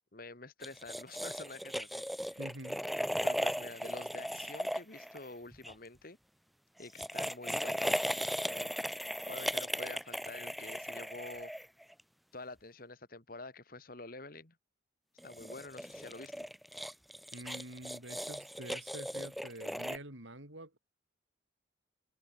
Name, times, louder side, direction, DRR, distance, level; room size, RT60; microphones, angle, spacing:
voice 1, 0.1-2.4 3.2-6.2 6.8-8.7 9.3-11.5 12.3-14.6 15.2-16.5, left 2 dB, 45° left, 2.0 m, -48 dB
sound 1, 0.6-5.7 6.8-12.0 15.2-20.0, equal, ahead, 0.6 m, -37 dB
voice 2, 2.4-2.8 17.3-20.8, right 1 dB, 75° right, 5.6 m, -47 dB
head